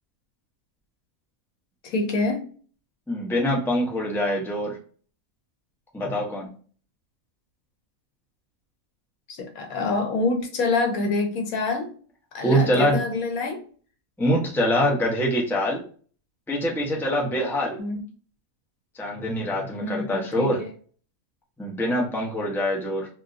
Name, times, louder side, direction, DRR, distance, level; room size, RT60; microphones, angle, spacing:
voice 1, 1.8-2.4 9.3-11.9 12.3-13.6 17.8-18.0 19.8-20.7, left 3 dB, 80° left, 3 dB, 1.3 m, -26 dB
voice 2, 3.1-4.8 5.9-6.5 12.4-13.0 14.2-15.8 16.5-17.8 18.9-20.6 21.6-23.1, equal, ahead, -2 dB, 0.7 m, -24 dB
3.5 x 2.6 x 2.5 m, 0.42 s
omnidirectional pair, 1.5 m